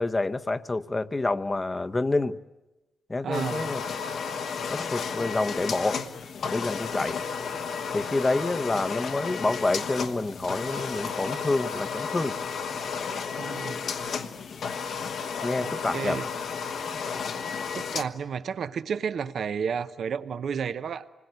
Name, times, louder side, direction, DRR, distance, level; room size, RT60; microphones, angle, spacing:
voice 1, 0.0-2.4 3.1-3.8 4.7-6.0 6.5-7.2 7.9-12.4 15.4-16.2, left 2 dB, 25° left, 0.8 m, -28 dB
voice 2, 3.2-3.8 13.4-13.8 15.6-16.3 17.7-21.1, right 7 dB, 70° right, 0.9 m, -32 dB
sound 1, 3.3-18.0, left 6 dB, 75° left, 1.2 m, -33 dB
28.0 x 20.5 x 9.4 m
cardioid pair, 105°, 0 cm